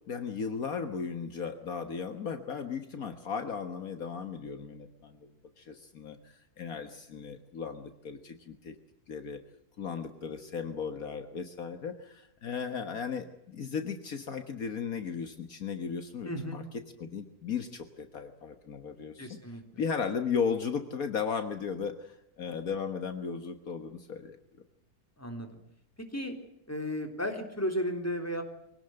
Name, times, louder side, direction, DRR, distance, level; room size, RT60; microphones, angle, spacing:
voice 1, 0.1-5.3 5.6-8.8 9.1-9.4 9.8-16.6 17.0-19.4 19.7-24.4, left 6 dB, 65° left, 8 dB, 1.8 m, -36 dB
voice 2, 16.3-16.6 19.2-19.6 25.2-25.6 26.1-26.4 26.7-28.4, equal, 10° left, 4 dB, 3.5 m, -34 dB
23.5 x 17.5 x 7.9 m, 0.81 s
omnidirectional pair, 1.6 m